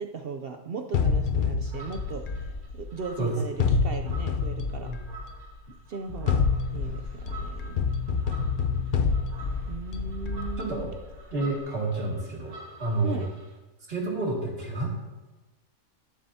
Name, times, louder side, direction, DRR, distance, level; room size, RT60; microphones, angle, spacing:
voice 1, 0.0-4.9 5.9-6.4 6.7-7.8 9.7-10.9 13.0-13.3, right 5 dB, 60° right, 5 dB, 0.6 m, -37 dB
sound 1, 0.9-3.1 3.6-5.4 6.1-11.2, left 5 dB, 55° left, 0.6 m, -28 dB
sound 2, 1.6-13.6, right 3 dB, 85° right, 2.0 m, -49 dB
voice 2, 3.2-3.8 4.8-5.0 10.6-10.9 11.3-13.3 13.9-14.9, right 2 dB, 45° right, -3 dB, 2.5 m, -29 dB
11.0 x 10.0 x 2.7 m, 1.2 s
omnidirectional pair, 1.5 m